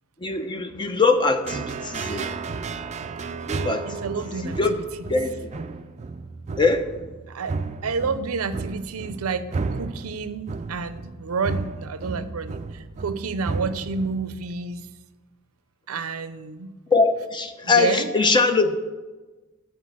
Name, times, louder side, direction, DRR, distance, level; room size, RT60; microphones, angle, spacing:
voice 1, 0.2-2.4 3.5-3.8 4.4-4.7 5.1-5.5 6.6-6.9 16.9-18.8, left 4 dB, 20° left, 7 dB, 0.7 m, -22 dB
sound 1, 1.4-14.6, right 4 dB, 30° right, 0.4 m, -33 dB
voice 2, 3.9-4.8 7.3-7.6 7.8-14.9 15.9-16.7 17.6-18.1, right 4 dB, 80° right, 12 dB, 0.6 m, -30 dB
10.0 x 4.4 x 7.6 m, 1.2 s
head